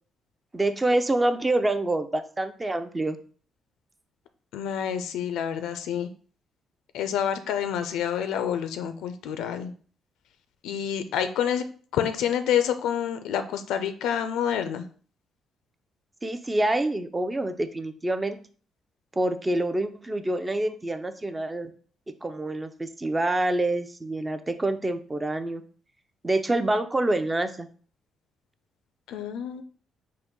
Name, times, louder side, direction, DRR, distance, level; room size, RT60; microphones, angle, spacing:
voice 1, 0.5-3.2 16.2-18.4 19.1-21.7 22.2-25.6 26.2-27.7, right 2 dB, 20° right, 9 dB, 0.4 m, -26 dB
voice 2, 4.5-6.1 6.9-9.7 10.6-11.6 11.9-14.8 29.1-29.6, left 9 dB, 90° left, 9 dB, 0.4 m, -28 dB
4.0 x 2.5 x 3.6 m, 0.43 s
cardioid pair, 90°, 0 cm